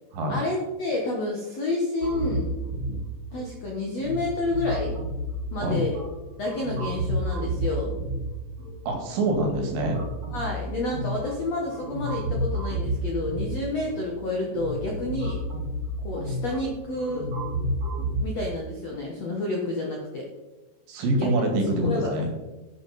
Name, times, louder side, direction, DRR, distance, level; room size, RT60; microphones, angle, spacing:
voice 1, 0.3-2.5 2.9-3.0 3.3-4.9 5.5-6.0 6.4-7.9 10.3-15.4 16.0-17.3 18.2-20.2 21.2-21.5 21.8-22.1, left 2 dB, 65° left, -1 dB, 1.7 m, -29 dB
sound 1, 2.0-18.2, right 1 dB, 40° right, 5.4 m, -31 dB
voice 2, 8.9-10.0 20.9-22.3, right 1 dB, 70° right, 3 dB, 4.2 m, -25 dB
11.5 x 10.5 x 4.2 m, 1.1 s
omnidirectional pair, 5.3 m